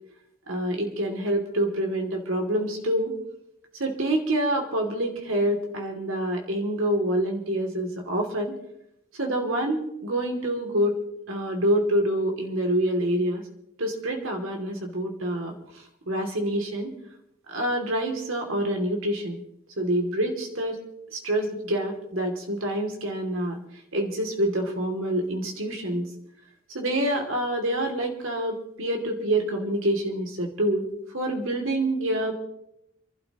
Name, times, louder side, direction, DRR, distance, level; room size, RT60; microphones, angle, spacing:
voice 1, 0.5-3.1 3.8-8.5 9.2-11.0 11.3-13.4 13.8-15.5 16.1-16.9 17.5-19.4 19.8-20.8 21.1-23.6 23.9-26.1 26.7-32.3, right 1 dB, 85° right, 2 dB, 2.8 m, -26 dB
28.5 x 12.5 x 3.1 m, 0.78 s
head